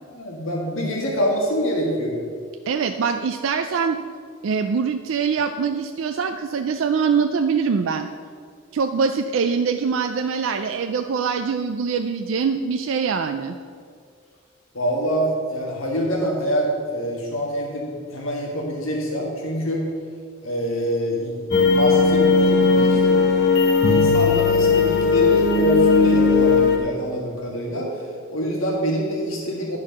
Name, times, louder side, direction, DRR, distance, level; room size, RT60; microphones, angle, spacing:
voice 1, 0.1-2.2 14.7-19.9 20.4-21.4 21.6-23.3 23.9-27.9 28.3-29.8, equal, 75° left, -2 dB, 1.8 m, -25 dB
voice 2, 2.7-4.0 4.4-8.1 8.7-13.6, right 5 dB, 65° right, 6 dB, 0.4 m, -23 dB
sound 1, 21.5-26.8, left 4 dB, 55° left, 0.8 m, -17 dB
11.0 x 4.7 x 5.7 m, 2.1 s
head